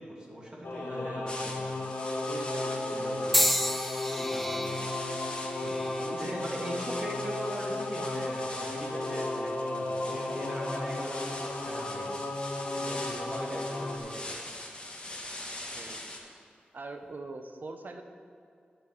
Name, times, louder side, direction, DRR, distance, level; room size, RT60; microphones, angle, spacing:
voice 1, 0.0-1.3 1.6-1.7 2.9-3.4 4.0-5.0 5.6-12.3 12.8-13.6 14.0-14.4, equal, 25° right, -3 dB, 2.6 m, -40 dB
Singing / Musical instrument, 0.6-14.0, left 2 dB, 65° left, 1.3 m, -34 dB
voice 2, 0.8-1.3 2.3-3.3 15.7-16.2 16.7-18.0, right 3 dB, 60° right, 5 dB, 0.9 m, -43 dB
sound 1, 1.3-16.2, left 1 dB, 25° left, 1.8 m, -43 dB
sound 2, 3.3-7.5 8.2-8.6 9.6-9.8, equal, 5° left, 0.5 m, -32 dB
9.8 x 5.3 x 7.7 m, 2.4 s
cardioid pair, 55°, 4 cm